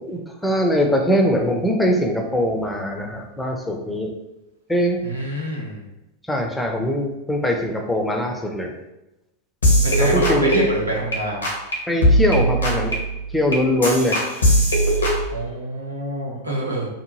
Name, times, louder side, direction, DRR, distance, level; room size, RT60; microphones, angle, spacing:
voice 1, 0.0-4.1 4.7-5.3 6.3-8.7 10.0-10.6 11.9-13.0 13.3-14.2, equal, 5° left, 2 dB, 0.4 m, -22 dB
voice 2, 5.0-5.8 9.8-11.4 15.3-16.9, right 1 dB, 80° right, -3 dB, 0.8 m, -26 dB
sound 1, 9.6-11.2 11.4-11.7 12.0-15.3, equal, 75° left, 0.7 m, -20 dB
2.7 x 2.1 x 3.0 m, 0.93 s
figure-of-eight pair, 90°, 0 cm